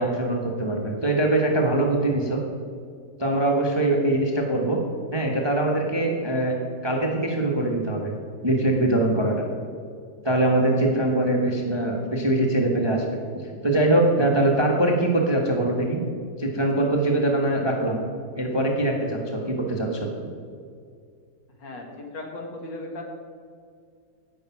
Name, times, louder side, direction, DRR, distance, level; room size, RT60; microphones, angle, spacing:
voice 1, 0.0-2.4 3.2-4.8 5.1-6.5 6.8-8.1 8.4-9.3 10.2-13.0 13.3-16.0 16.4-18.0 18.3-20.3, right 1 dB, 15° right, 0 dB, 1.1 m, -23 dB
voice 2, 21.6-23.0, left 2 dB, 65° left, 2 dB, 2.4 m, -36 dB
16.5 x 6.6 x 5.9 m, 2.3 s
omnidirectional pair, 2.2 m